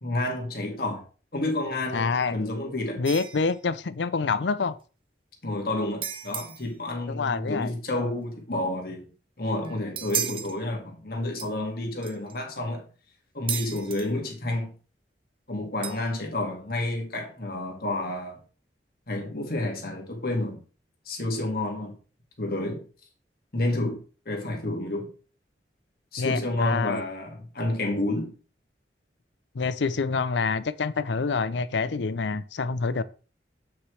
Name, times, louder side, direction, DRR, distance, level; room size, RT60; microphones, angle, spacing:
voice 1, 0.0-1.1 1.3-3.0 5.4-9.1 9.4-12.9 13.3-14.7 15.5-18.4 19.1-20.6 21.1-21.9 22.4-22.8 23.5-25.1 26.1-28.3, left 1 dB, 55° left, 1.9 m, -30 dB
voice 2, 1.9-2.3 3.0-4.8 7.1-7.7 26.2-27.0 29.5-33.0, left 4 dB, 85° left, 0.5 m, -27 dB
sound 1, 3.0-3.6 6.0-6.7 9.6-10.6 11.4-11.5 12.0-12.3 13.5-14.1 15.8-16.3, right 8 dB, 30° right, 0.6 m, -34 dB
7.7 x 5.9 x 3.2 m
head